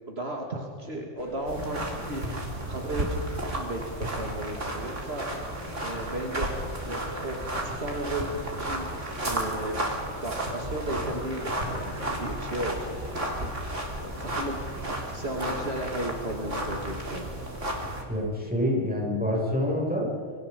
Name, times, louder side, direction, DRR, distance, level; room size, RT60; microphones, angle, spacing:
voice 1, 0.0-2.4 2.7-3.2 3.5-5.3 5.6-8.9 9.2-12.9 13.2-17.3, right 1 dB, 55° right, 1 dB, 2.9 m, -35 dB
sound 1, 1.2-13.5, equal, 25° right, 4.9 m, -45 dB
sound 2, 1.5-18.0, right 1 dB, 75° right, 4.4 m, -33 dB
voice 2, 18.1-20.1, left 1 dB, 5° right, -3 dB, 7.3 m, -27 dB
29.0 x 25.5 x 5.5 m, 2.1 s
omnidirectional pair, 1.3 m